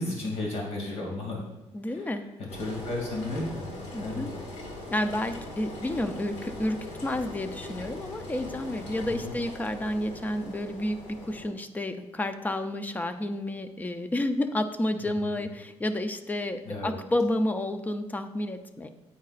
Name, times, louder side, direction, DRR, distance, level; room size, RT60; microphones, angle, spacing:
voice 1, 0.0-1.4 1.9-2.0 2.4-3.7 4.0-4.2 9.0-9.3 15.0-15.4 16.7-16.9, left 2 dB, 70° left, -1 dB, 2.6 m, -33 dB
voice 2, 1.7-2.2 3.9-4.3 4.9-18.9, left 1 dB, 15° left, 8 dB, 0.5 m, -30 dB
Engine, 2.5-11.5, left 2 dB, 85° left, 1.9 m, -41 dB
9.5 x 8.6 x 2.5 m, 0.98 s
cardioid pair, 130°, 12 cm